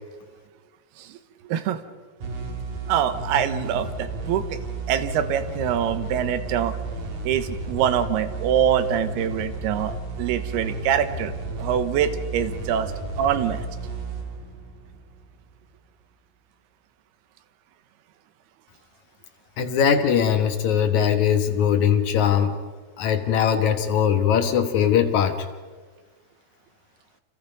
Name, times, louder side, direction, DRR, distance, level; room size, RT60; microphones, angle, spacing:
voice 1, 1.4-1.8 2.9-4.6 4.9-6.8 7.2-11.3 11.6-12.9 13.2-13.7, right 9 dB, 75° right, 11 dB, 3.0 m, -24 dB
sound 1, 2.2-15.5, right 3 dB, 55° right, 4.0 m, -33 dB
voice 2, 19.6-22.6 23.0-25.3, left 8 dB, 65° left, 7 dB, 2.1 m, -20 dB
30.0 x 26.5 x 5.2 m, 1.4 s
omnidirectional pair, 4.8 m